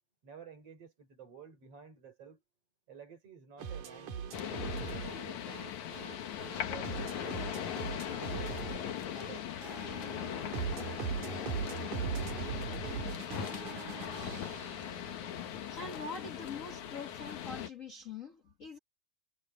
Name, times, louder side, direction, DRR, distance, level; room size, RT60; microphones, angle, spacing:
voice 1, 0.2-2.4 2.9-6.1 6.6-8.7 9.0-9.5, right 7 dB, 50° right, 5.3 m, -52 dB
sound 1, 3.6-15.5, right 7 dB, 85° right, 3.4 m, -40 dB
sound 2, 4.3-17.7, left 10 dB, 75° left, 2.8 m, -39 dB
voice 2, 15.7-18.8, left 4 dB, 45° left, 1.0 m, -43 dB
omnidirectional pair, 3.4 m